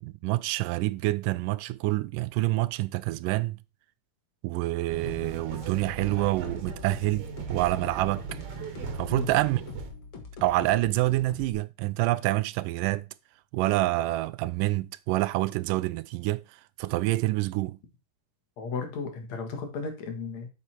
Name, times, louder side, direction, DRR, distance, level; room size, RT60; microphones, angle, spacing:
voice 1, 0.0-3.6 4.4-8.4 9.0-9.6 10.4-13.1 13.5-17.8, right 18 dB, 90° right, 2.2 m, -27 dB
sound 1, 4.9-9.9, right 6 dB, 65° right, 2.6 m, -38 dB
sound 2, 5.1-11.5, left 4 dB, 45° left, 1.9 m, -44 dB
voice 2, 18.6-20.5, left 5 dB, 60° left, 2.7 m, -34 dB
8.0 x 6.4 x 4.3 m
omnidirectional pair, 3.7 m